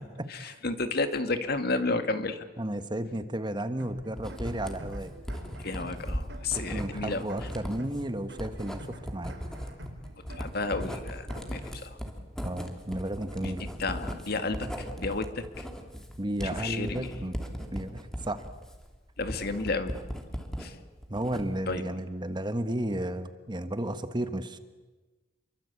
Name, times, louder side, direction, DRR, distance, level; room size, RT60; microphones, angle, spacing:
voice 1, 0.3-2.4 5.6-7.3 10.3-12.0 13.4-15.7 16.4-17.1 19.2-19.9 20.6-20.8 21.7-21.8, left 3 dB, 60° left, 8 dB, 2.1 m, -32 dB
voice 2, 2.6-5.1 6.5-9.3 12.4-13.7 16.2-17.3 17.7-18.4 21.1-24.6, right 1 dB, 25° right, 10 dB, 1.4 m, -33 dB
sound 1, 3.8-11.8, equal, 80° right, 5.7 m, -47 dB
Writing, 4.2-20.7 21.0-21.7, equal, 5° left, 3.0 m, -38 dB
29.5 x 23.5 x 8.5 m, 1.2 s
head